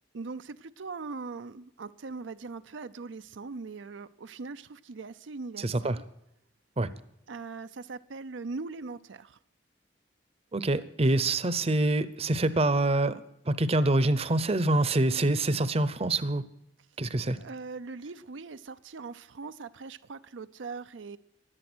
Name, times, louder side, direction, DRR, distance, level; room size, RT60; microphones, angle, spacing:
voice 1, 0.1-6.0 7.3-9.4 17.4-21.2, right 4 dB, 85° right, 0.6 m, -41 dB
voice 2, 5.6-6.0 6.8-6.9 10.5-16.4 17.0-17.4, right 2 dB, 35° right, 0.7 m, -26 dB
16.5 x 11.0 x 6.2 m
head